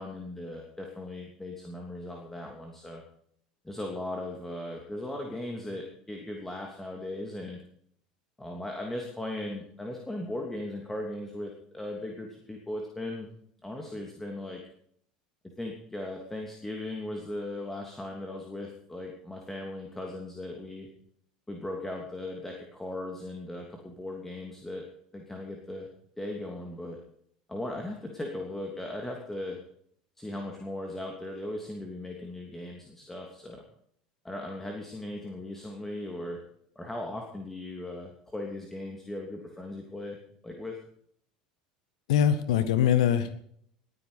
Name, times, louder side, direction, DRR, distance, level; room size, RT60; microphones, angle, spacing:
voice 1, 0.0-3.0 3.6-7.6 8.4-13.3 13.6-14.6 15.6-20.9 21.5-24.8 25.1-25.9 26.2-27.0 27.5-29.6 30.2-33.6 34.2-36.4 36.7-40.2 40.4-40.8, left 1 dB, 10° left, 1 dB, 3.1 m, -38 dB
voice 2, 42.1-43.5, left 9 dB, 65° left, 12 dB, 1.6 m, -23 dB
20.5 x 10.0 x 5.2 m, 0.66 s
figure-of-eight pair, 70°, 4 cm